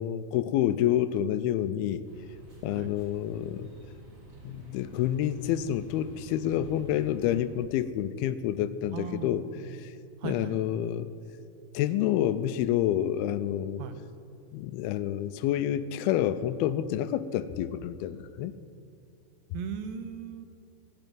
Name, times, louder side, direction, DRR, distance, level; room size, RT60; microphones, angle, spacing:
voice 1, 0.0-2.0 2.6-3.7 4.4-9.5 9.8-9.9 10.2-11.1 11.7-13.8 14.5-18.5, left 11 dB, 85° left, 13 dB, 2.5 m, -28 dB
sound 1, 2.0-7.4, right 1 dB, 40° right, 4.0 m, -49 dB
voice 2, 8.9-9.8 10.2-10.6 13.8-14.0 19.5-20.5, right 7 dB, 75° right, 8 dB, 2.5 m, -38 dB
15.5 x 7.7 x 9.2 m, 2.4 s
omnidirectional pair, 4.4 m